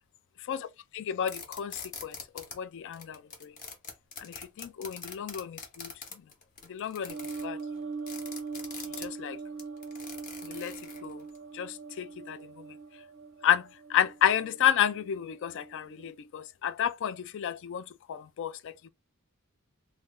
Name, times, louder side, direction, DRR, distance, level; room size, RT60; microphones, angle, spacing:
voice 1, 0.4-3.6 4.2-6.2 6.6-7.6 8.8-9.4 10.4-11.3 11.5-13.0 13.4-18.9, left 10 dB, 55° left, 0.3 m, -32 dB
sound 1, 1.3-2.5 2.9-11.4, left 4 dB, 35° left, 0.9 m, -43 dB
sound 2, 7.1-16.1, right 4 dB, 55° right, 0.4 m, -42 dB
3.1 x 2.2 x 3.5 m
head